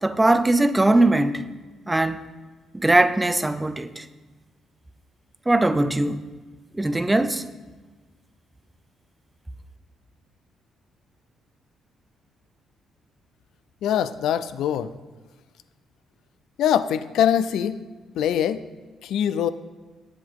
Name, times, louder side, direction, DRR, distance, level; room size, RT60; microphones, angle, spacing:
voice 1, 0.0-1.4 1.9-2.3 2.7-4.1 5.5-6.2 6.7-7.4, right 2 dB, 10° right, 0.4 m, -20 dB
voice 2, 13.8-14.9 16.6-17.8 18.2-18.6 19.0-19.5, left 9 dB, 80° left, 0.3 m, -23 dB
8.0 x 7.5 x 3.6 m
cardioid pair, 90°, 0 cm